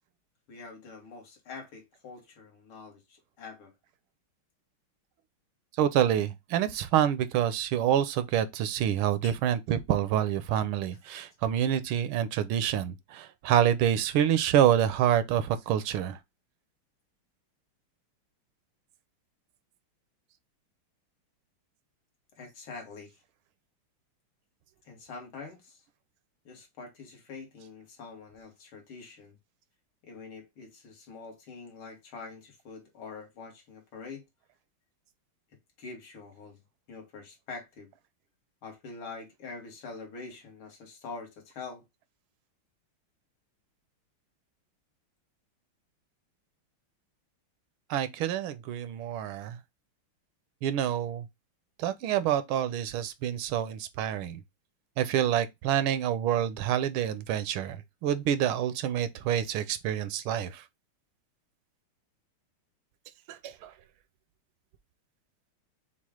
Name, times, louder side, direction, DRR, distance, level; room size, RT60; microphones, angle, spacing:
voice 1, 0.5-3.7 9.2-9.3 22.4-23.2 24.9-25.8 26.5-29.3 30.0-34.2 35.8-36.6 36.9-37.9 38.6-41.9, left 4 dB, 70° left, 2.4 m, -45 dB
voice 2, 5.8-16.2 47.9-49.6 50.6-51.2 51.8-54.4 55.0-60.6 63.3-63.7, right 10 dB, 80° right, 1.4 m, -27 dB
6.2 x 2.4 x 3.5 m
omnidirectional pair, 2.4 m